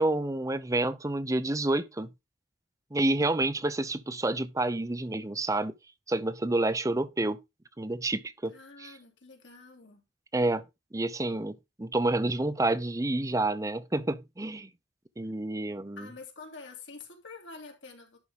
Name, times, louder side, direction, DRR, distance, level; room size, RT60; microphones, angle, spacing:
voice 1, 0.0-2.1 2.9-5.7 6.1-7.4 7.8-8.9 10.3-10.7 10.9-14.7 15.2-16.1, right 2 dB, 20° right, 0.7 m, -29 dB
voice 2, 8.5-10.0 16.0-18.2, left 4 dB, 85° left, 2.8 m, -47 dB
11.0 x 3.7 x 5.2 m
head